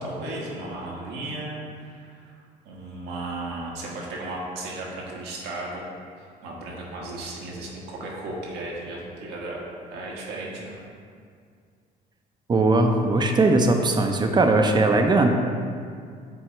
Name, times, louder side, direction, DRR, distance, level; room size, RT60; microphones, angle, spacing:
voice 1, 0.0-2.3 2.6-5.9 6.2-9.6 9.9-10.9, right 2 dB, 80° right, -3 dB, 1.3 m, -35 dB
voice 2, 12.5-15.3, right 2 dB, 25° right, 4 dB, 0.6 m, -19 dB
7.7 x 2.8 x 4.4 m, 2.2 s
cardioid pair, 110°, 17 cm